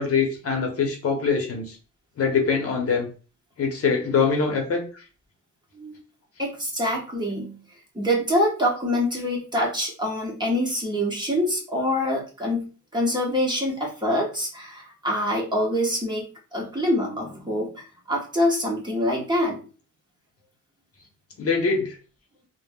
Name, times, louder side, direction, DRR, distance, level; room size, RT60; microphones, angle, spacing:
voice 1, 0.0-1.8 2.2-3.1 3.6-5.0 21.4-22.0, left 5 dB, 50° left, 2 dB, 0.9 m, -23 dB
voice 2, 6.4-7.6 7.9-16.2 16.5-19.6, left 1 dB, 15° right, -2 dB, 1.0 m, -25 dB
3.3 x 2.1 x 2.2 m, 0.36 s
cardioid pair, 90°, 30 cm